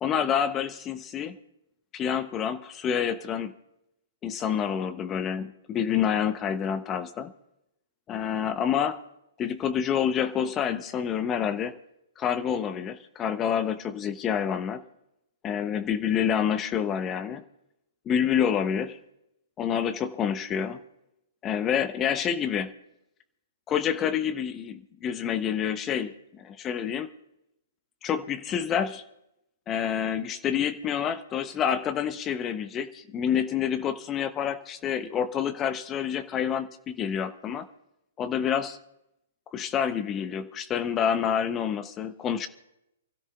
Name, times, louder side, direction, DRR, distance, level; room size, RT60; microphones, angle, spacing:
voice 1, 0.0-1.4 1.9-3.5 4.2-7.3 8.1-9.0 9.4-11.7 12.2-14.8 15.4-17.4 18.1-19.0 19.6-20.8 21.4-22.7 23.7-27.1 28.0-29.0 29.7-37.7 38.2-38.8 39.5-42.5, left 8 dB, 25° left, 11 dB, 0.7 m, -28 dB
28.0 x 13.5 x 2.3 m, 0.86 s
hypercardioid pair, 120°, 0 cm